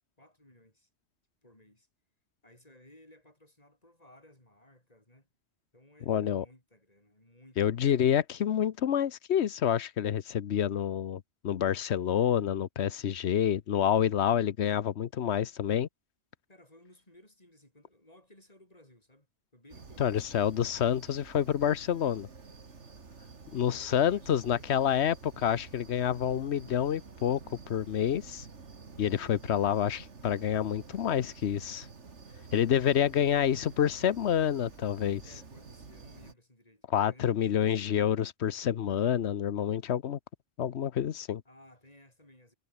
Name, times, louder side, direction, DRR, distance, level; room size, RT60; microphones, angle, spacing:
voice 1, 0.2-0.9 1.4-1.9 2.4-5.3 5.7-7.9 14.0-14.2 16.5-19.3 19.5-20.5 23.5-24.9 35.2-37.4 41.4-42.5, left 1 dB, 35° left, 6.2 m, -59 dB
voice 2, 6.1-6.4 7.6-15.9 20.0-22.3 23.5-27.4 27.7-28.4 29.0-31.9 32.5-35.2 36.9-40.2 40.6-41.4, left 9 dB, 75° left, 1.1 m, -28 dB
sound 1, 19.7-36.3, right 4 dB, 85° right, 2.4 m, -50 dB
omnidirectional pair, 1.2 m